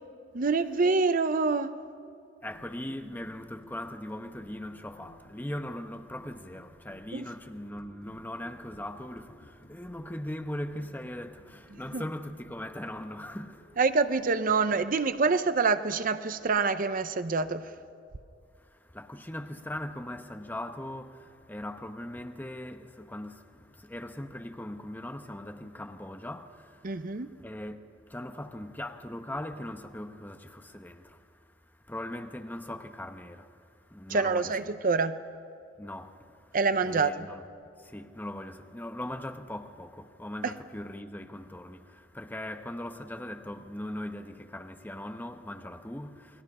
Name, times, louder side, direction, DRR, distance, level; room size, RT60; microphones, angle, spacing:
voice 1, 0.3-1.8 7.1-7.2 11.7-12.0 13.8-17.7 26.8-27.3 34.1-35.2 36.5-37.3 40.4-40.5, right 4 dB, 50° right, 0.7 m, -26 dB
voice 2, 2.4-13.8 18.6-34.5 35.8-36.6 36.8-37.4 37.8-46.4, left 1 dB, 10° left, 1.0 m, -40 dB
sound 1, 2.5-15.4, equal, 60° left, 3.7 m, -57 dB
29.0 x 21.5 x 5.5 m
head